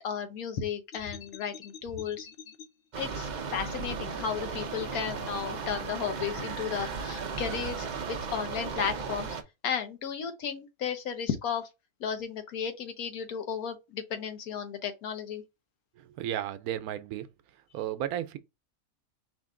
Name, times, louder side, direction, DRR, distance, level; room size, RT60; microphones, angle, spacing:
voice 1, 0.0-2.3 3.0-9.4 9.6-11.7 12.0-15.4, left 7 dB, 80° left, 1.3 m, -34 dB
sound 1, 0.9-2.7 3.5-4.5, left 6 dB, 65° left, 0.6 m, -45 dB
sound 2, 2.9-9.4, right 5 dB, 50° right, 0.5 m, -36 dB
voice 2, 16.0-17.3 17.7-18.4, right 11 dB, 85° right, 1.1 m, -33 dB
5.0 x 2.6 x 3.6 m
omnidirectional pair, 1.5 m